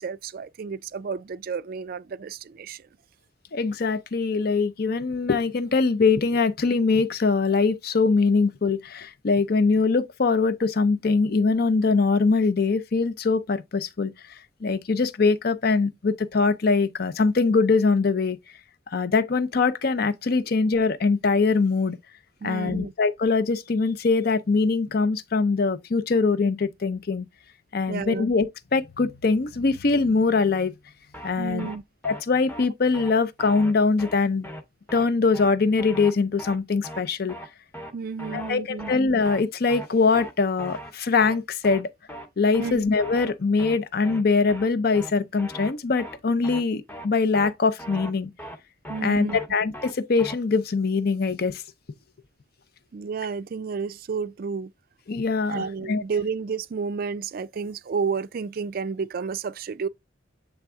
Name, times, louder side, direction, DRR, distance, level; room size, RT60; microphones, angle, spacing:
voice 1, 0.0-2.9 22.4-22.9 27.9-28.3 31.4-31.8 37.9-38.9 42.6-42.8 48.9-49.4 52.9-54.7 55.5-59.9, right 5 dB, 50° right, 0.4 m, -31 dB
voice 2, 3.5-14.1 14.6-18.4 18.9-22.0 22.4-27.3 27.7-30.7 31.2-31.7 32.0-34.5 34.9-37.3 38.3-41.9 42.4-48.3 49.0-51.6 55.1-56.0, left 4 dB, 50° left, 0.6 m, -22 dB
sound 1, 31.1-31.3 31.6-31.8 32.0-32.2 32.5-32.7 32.9-33.1 33.4-33.7 34.0-34.2 34.4-34.6 34.9-35.1 35.3-35.5 35.8-36.1 36.4-36.6 36.8-37.0 37.3-37.5 37.7-37.9 38.2-38.5 38.8-39.0 39.2-39.4 39.7-39.9 40.1-40.3 40.6-40.9 41.2-41.4 41.6-41.8 42.1-42.3 42.5-42.7 43.0-43.3 43.6-43.8 44.0-44.2 44.5-44.7 44.9-45.1 45.4-45.7 46.0-46.2 46.4-46.6 46.9-47.1 47.3-47.5 47.8-48.1 48.4-48.6 48.8-49.0 49.3-49.5 49.7-49.9 50.2-50.3, equal, 10° left, 0.8 m, -38 dB
7.9 x 3.4 x 3.6 m
head